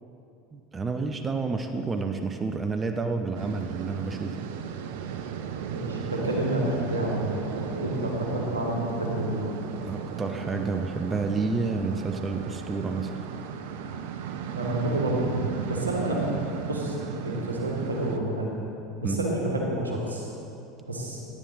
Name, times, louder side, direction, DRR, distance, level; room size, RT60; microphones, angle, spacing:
voice 1, 0.5-4.5 9.9-13.1 19.0-19.2, right 4 dB, 25° right, 6 dB, 0.7 m, -29 dB
sound 1, 3.3-18.2, right 7 dB, 65° right, 0.6 m, -35 dB
voice 2, 5.7-9.4 14.5-16.3 16.6-16.9 17.2-18.5 19.0-20.3 20.9-21.2, right 1 dB, 90° right, -2 dB, 1.6 m, -29 dB
10.0 x 10.0 x 4.0 m, 2.8 s
hypercardioid pair, 75°, 0 cm